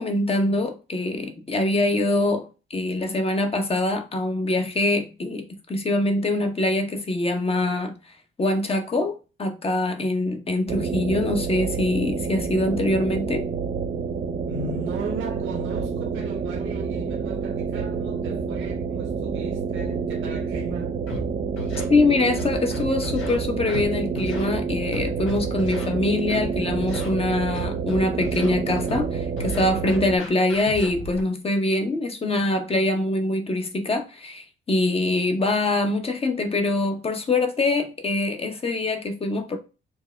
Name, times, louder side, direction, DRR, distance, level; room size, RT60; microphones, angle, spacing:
voice 1, 0.0-2.5 2.7-7.9 8.4-13.5 21.9-39.6, left 2 dB, 30° left, 0.8 m, -24 dB
sound 1, 10.7-30.2, right 5 dB, 35° right, 0.6 m, -28 dB
voice 2, 14.5-21.0, right 3 dB, 70° right, 1.1 m, -36 dB
Scratching (performance technique), 21.1-21.2 21.6-21.8 22.4-23.3 23.7-23.9 24.2-24.5 24.9-25.8 26.3-26.4 26.8-27.1 27.5-28.5 28.9-29.0 29.4-31.2, left 2 dB, 85° left, 1.5 m, -34 dB
4.6 x 2.1 x 3.3 m
cardioid pair, 90°, 21 cm